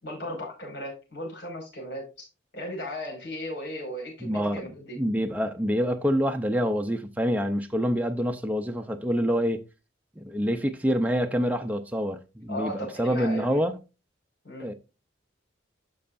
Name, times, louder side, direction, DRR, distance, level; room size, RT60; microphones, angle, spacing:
voice 1, 0.0-2.3 2.5-5.0 12.5-13.6 14.4-14.7, equal, 65° left, 5.1 m, -36 dB
voice 2, 4.2-9.6 10.2-12.7 13.0-13.8 14.6-14.7, equal, 10° right, 0.5 m, -26 dB
12.0 x 5.5 x 2.5 m
head